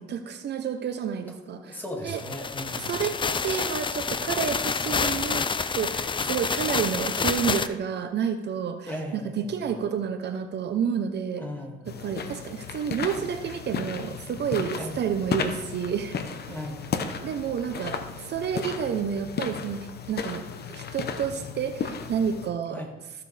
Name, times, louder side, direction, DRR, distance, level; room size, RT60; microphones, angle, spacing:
voice 1, 0.0-2.2 2.8-11.4 11.9-16.2 16.5-16.6 17.2-20.4 20.7-22.8, right 7 dB, 60° right, 8 dB, 0.8 m, -30 dB
voice 2, 1.5-2.9 8.9-9.7 11.4-12.2 14.7-15.1 16.5-17.2 22.7-22.9, left 1 dB, 10° left, 0 dB, 2.1 m, -37 dB
sound 1, 2.1-7.7, left 5 dB, 25° left, 0.5 m, -28 dB
sound 2, 11.9-22.5, left 6 dB, 55° left, 0.9 m, -34 dB
14.5 x 6.8 x 3.4 m, 1.1 s
cardioid pair, 90°, 20 cm